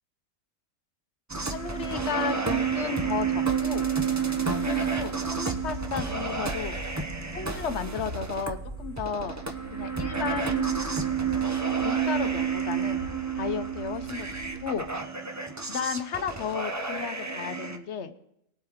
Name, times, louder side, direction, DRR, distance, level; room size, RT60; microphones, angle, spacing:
sound 1, 1.3-17.8, right 6 dB, 20° right, 0.5 m, -30 dB
voice 1, 1.5-2.4 2.7-3.9 4.6-6.8 7.3-9.4 9.7-10.8 11.8-13.0 13.3-14.3 14.6-14.9 15.7-18.1, left 6 dB, 60° left, 10 dB, 1.0 m, -33 dB
sound 2, 5.1-14.9, right 1 dB, 90° right, 3.2 m, -45 dB
20.5 x 7.8 x 3.6 m, 0.78 s
omnidirectional pair, 1.4 m